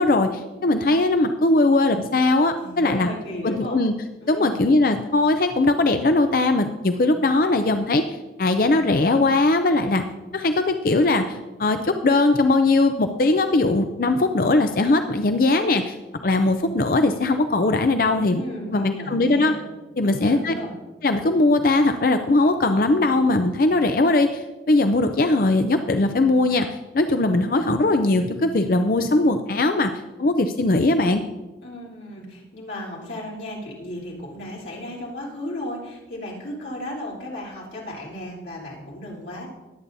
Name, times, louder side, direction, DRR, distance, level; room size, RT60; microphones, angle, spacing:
voice 1, 0.0-3.1 3.4-3.9 4.3-8.0 8.4-10.0 10.3-16.0 16.2-18.4 18.7-19.5 20.0-20.5 21.0-24.4 24.7-29.9 30.2-31.2, left 2 dB, 50° left, 7 dB, 0.5 m, -20 dB
voice 2, 2.6-3.8 4.2-4.6 18.3-19.6 20.0-20.8 31.6-39.5, left 1 dB, 75° left, -5 dB, 3.4 m, -35 dB
20.0 x 8.5 x 2.7 m, 1.2 s
head